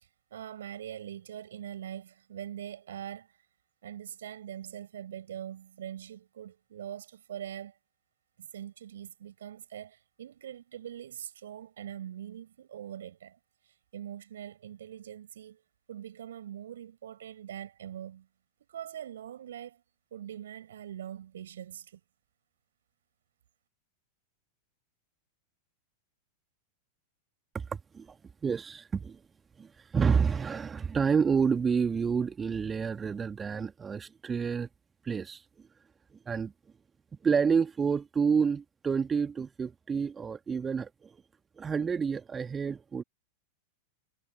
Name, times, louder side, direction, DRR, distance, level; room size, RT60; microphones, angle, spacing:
voice 1, 0.0-3.4 3.8-7.8 8.4-13.4 13.6-15.6 15.9-18.3 18.7-19.8 20.1-22.0, right 10 dB, 60° right, 6.3 m, -43 dB
voice 2, 27.5-28.2 28.4-29.2 29.6-34.7 35.0-35.4 36.3-36.5 37.2-41.1 41.6-43.0, right 6 dB, 20° right, 1.7 m, -29 dB
figure-of-eight pair, 90°, 0 cm